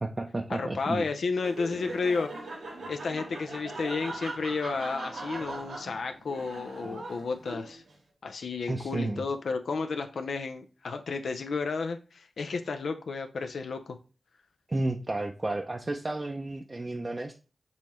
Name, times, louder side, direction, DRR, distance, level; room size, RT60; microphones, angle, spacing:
voice 1, 0.0-1.0 8.7-9.2 14.7-17.3, right 2 dB, 35° right, 3 dB, 0.5 m, -32 dB
voice 2, 0.6-2.5 2.9-7.8 8.2-14.0, left 4 dB, 80° left, 7 dB, 0.4 m, -32 dB
Laughter, 1.3-7.9, right 2 dB, 90° right, 1.1 m, -40 dB
5.3 x 2.9 x 3.1 m, 0.34 s
cardioid pair, 55°, 0 cm